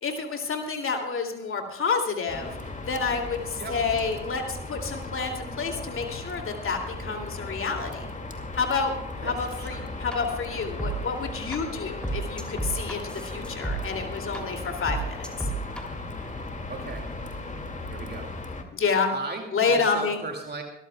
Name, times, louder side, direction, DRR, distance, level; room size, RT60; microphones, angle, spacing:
voice 1, 0.0-2.6 2.8-8.1 8.5-8.9 9.2-15.5 18.7-19.1 19.5-20.2, left 5 dB, 40° left, 3 dB, 2.6 m, -29 dB
sound 1, 2.3-18.6, left 2 dB, 20° left, 2.2 m, -37 dB
voice 2, 9.2-9.8 16.7-17.1 17.9-18.3 19.1-20.6, right 3 dB, 30° right, 3 dB, 2.3 m, -37 dB
sound 2, 10.1-10.2 10.8-10.9 11.5-11.6 12.0-13.8 14.3-14.4 14.9-15.8, right 2 dB, 5° left, 3.0 m, -30 dB
25.0 x 14.0 x 2.3 m, 0.79 s
hypercardioid pair, 50°, 33 cm